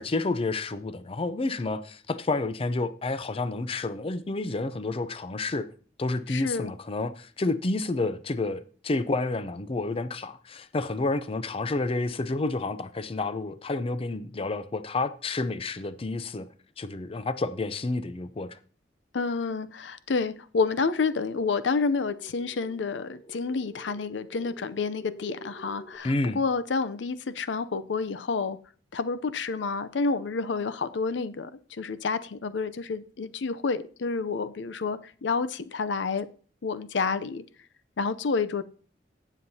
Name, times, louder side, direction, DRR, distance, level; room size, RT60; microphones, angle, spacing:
voice 1, 0.0-5.7 6.0-16.5 16.8-18.6 26.0-26.4, left 2 dB, 30° left, 0.5 m, -30 dB
voice 2, 6.3-6.7 19.1-28.6 28.9-31.5 31.8-36.3 36.6-37.4 38.0-38.6, left 4 dB, 85° left, 0.6 m, -29 dB
sound 1, 21.0-26.0, left 1 dB, 15° left, 1.1 m, -49 dB
17.5 x 7.2 x 2.8 m
head